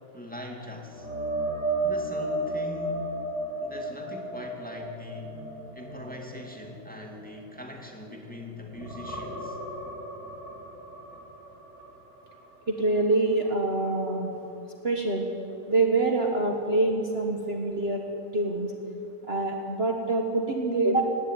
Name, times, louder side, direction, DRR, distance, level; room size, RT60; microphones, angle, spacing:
voice 1, 0.1-1.1 1.8-3.2 3.6-5.4 5.7-9.6, left 2 dB, 5° left, 1 dB, 2.3 m, -41 dB
sound 1, 0.9-8.3 8.7-12.5 12.9-13.1 16.5-16.6, right 2 dB, 65° left, 4.0 m, -34 dB
voice 2, 12.7-14.3 14.8-15.3 15.7-18.0 18.3-18.7 19.3-21.0, right 2 dB, 40° right, 2 dB, 1.7 m, -25 dB
19.0 x 16.5 x 9.3 m, 2.9 s
omnidirectional pair, 1.7 m